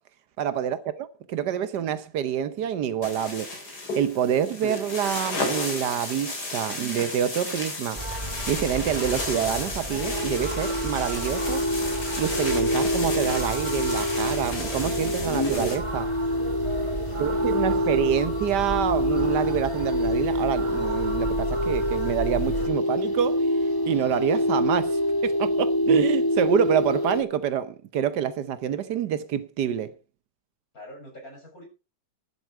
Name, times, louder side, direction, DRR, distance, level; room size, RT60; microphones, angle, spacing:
voice 1, 0.4-11.6 12.2-16.1 17.2-29.9, right 9 dB, 85° right, 1.5 m, -27 dB
sound 1, 3.0-15.8, left 2 dB, 75° left, 4.2 m, -33 dB
sound 2, 7.9-22.7, right 1 dB, 20° right, 2.2 m, -34 dB
sound 3, 10.0-27.2, left 1 dB, 30° left, 0.4 m, -26 dB
voice 2, 17.0-17.9 30.7-31.7, equal, 60° left, 7.1 m, -47 dB
11.5 x 11.5 x 4.5 m
omnidirectional pair, 1.7 m